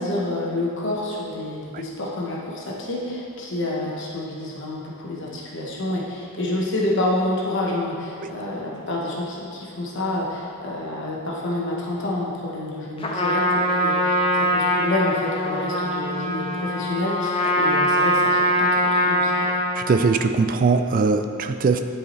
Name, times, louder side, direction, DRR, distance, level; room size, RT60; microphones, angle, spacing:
voice 1, 0.0-13.4 13.7-19.5, left 1 dB, 55° left, -3 dB, 1.1 m, -28 dB
Trumpet, 13.0-19.8, equal, 25° left, 0.5 m, -22 dB
voice 2, 19.7-21.8, right 4 dB, 40° right, 8 dB, 0.3 m, -21 dB
10.0 x 4.8 x 3.2 m, 2.7 s
head